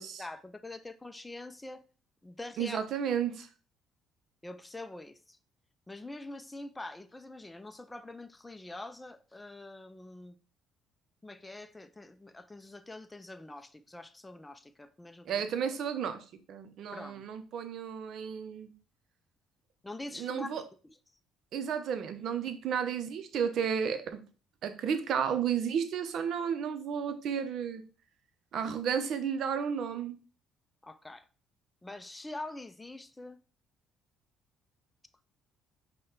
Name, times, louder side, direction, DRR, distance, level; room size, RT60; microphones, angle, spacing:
voice 1, 0.0-1.8 2.2-2.8 4.4-5.4 5.9-10.4 11.2-15.4 16.9-17.3 19.8-20.5 20.8-21.0 30.8-31.3 31.8-33.4, left 2 dB, 15° left, 0.5 m, -44 dB
voice 2, 2.6-3.5 15.2-18.7 20.2-20.6 21.5-24.2 24.6-27.8 28.5-30.2, right 7 dB, 65° right, 0.6 m, -32 dB
5.2 x 2.2 x 3.7 m
hypercardioid pair, 65°, 0 cm